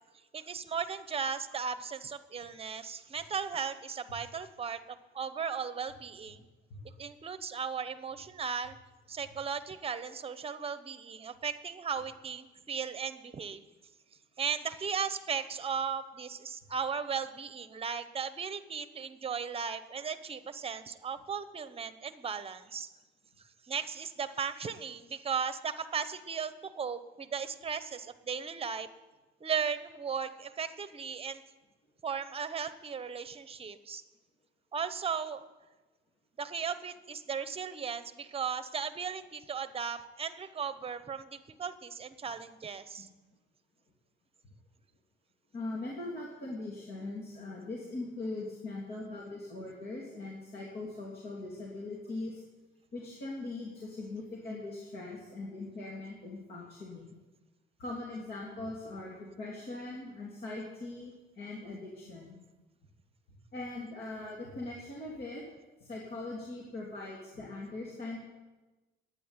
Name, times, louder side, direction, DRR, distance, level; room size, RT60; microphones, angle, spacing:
voice 1, 0.3-6.4 7.0-8.8 9.1-13.6 14.4-22.9 23.7-28.9 29.4-31.4 32.0-34.0 34.7-35.4 36.4-43.1, right 6 dB, 30° right, 12 dB, 1.0 m, -36 dB
voice 2, 45.5-52.4 52.9-57.1 57.8-62.4 63.5-65.4 65.8-68.2, left 2 dB, 50° left, -3 dB, 3.1 m, -41 dB
11.5 x 9.3 x 9.9 m, 1.2 s
cardioid pair, 120°, 20 cm